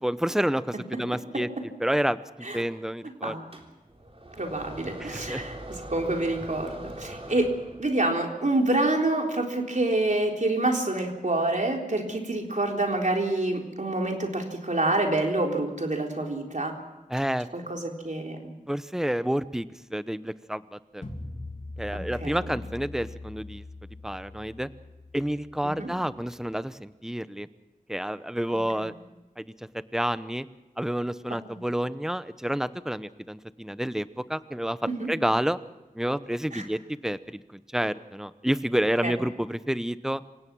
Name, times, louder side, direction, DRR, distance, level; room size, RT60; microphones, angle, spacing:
voice 1, 0.0-2.2 2.5-3.3 5.0-5.4 17.1-17.5 18.7-19.7 19.9-21.0 21.8-23.6 24.0-24.7 25.1-27.5 27.9-28.9 29.4-29.5 29.9-30.4 30.8-34.8 35.1-35.6 35.9-40.2, equal, 5° right, 14 dB, 0.8 m, -29 dB
sound 1, 3.5-8.0, right 1 dB, 45° right, 3.6 m, -41 dB
voice 2, 4.4-5.5 5.9-7.5 7.8-16.7 17.5-18.5 21.9-22.6 25.8-25.9 28.8-28.9 34.9-35.1 36.5-36.6 39.0-39.1, right 2 dB, 60° right, 1 dB, 3.9 m, -27 dB
sound 2, 21.0-26.0, left 2 dB, 55° left, 2.8 m, -41 dB
27.5 x 17.0 x 6.2 m, 1.1 s
wide cardioid pair, 60°, 14 cm